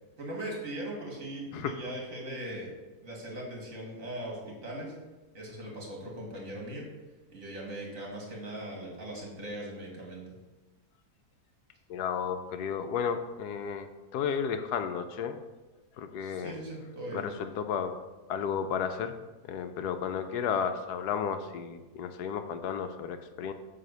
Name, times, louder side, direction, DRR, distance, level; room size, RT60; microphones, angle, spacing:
voice 1, 0.2-2.7 3.0-4.9 5.3-6.9 7.3-10.3 16.2-17.3, right 1 dB, 55° right, -2 dB, 2.3 m, -39 dB
voice 2, 11.9-15.4 16.0-16.5 17.1-17.9 18.3-19.1 19.5-23.5, left 7 dB, 75° left, 9 dB, 1.1 m, -33 dB
9.0 x 3.5 x 6.8 m, 1.2 s
omnidirectional pair, 1.7 m